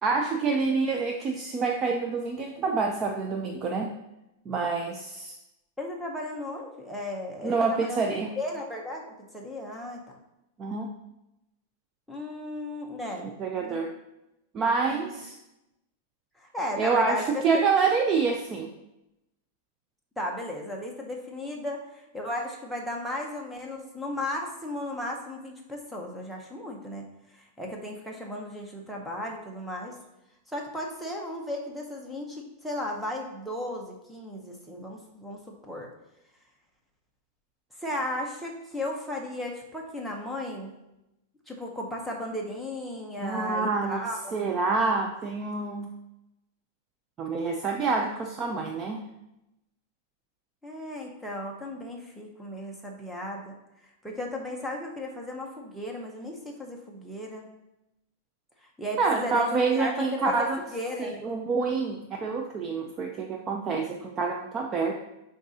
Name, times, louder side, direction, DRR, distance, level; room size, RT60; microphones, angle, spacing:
voice 1, 0.0-3.9 4.5-5.3 7.4-8.3 10.6-10.9 13.2-13.9 14.5-15.4 16.8-18.7 43.2-45.9 47.2-49.0 59.0-60.6 61.0-64.9, right 4 dB, 20° right, 2 dB, 0.4 m, -27 dB
voice 2, 5.8-8.0 8.4-10.0 12.1-13.3 13.6-13.8 14.9-15.1 16.4-17.6 20.2-27.0 27.3-29.9 30.5-35.9 37.8-40.7 41.5-44.3 50.6-53.5 54.0-57.5 58.8-61.2, left 1 dB, ahead, -1 dB, 0.7 m, -35 dB
9.9 x 3.7 x 2.7 m, 0.90 s
supercardioid pair, 170°, 0 cm